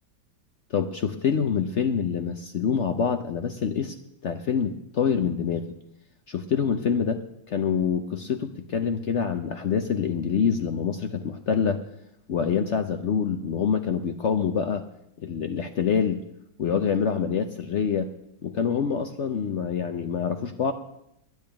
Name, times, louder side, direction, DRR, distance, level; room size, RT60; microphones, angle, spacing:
voice 1, 0.7-4.0 4.2-5.6 6.3-7.2 7.5-11.8 12.3-14.8 15.2-16.2 16.6-18.1 18.4-20.7, left 7 dB, 75° left, 8 dB, 0.6 m, -26 dB
10.5 x 9.3 x 8.9 m, 0.79 s
omnidirectional pair, 2.2 m